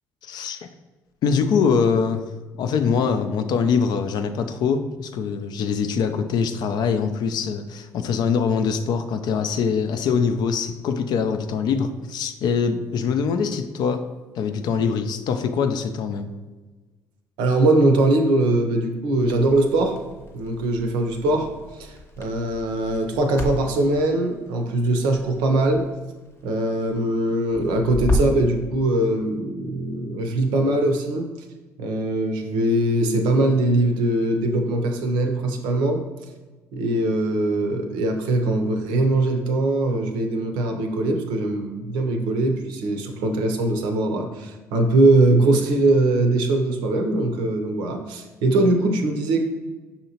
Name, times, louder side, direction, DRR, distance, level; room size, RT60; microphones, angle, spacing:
voice 1, 0.2-0.7 1.2-2.2 2.6-14.0 14.4-16.3, left 6 dB, 60° left, 9 dB, 0.4 m, -23 dB
voice 2, 17.4-20.0 20.3-21.5 21.8-25.8 26.4-31.3 31.8-36.0 36.7-49.4, right 2 dB, 70° right, 4 dB, 0.6 m, -21 dB
Crackle, 19.2-28.5, left 1 dB, 30° left, 0.8 m, -33 dB
5.5 x 2.8 x 2.8 m, 1.2 s
hypercardioid pair, 55°, 8 cm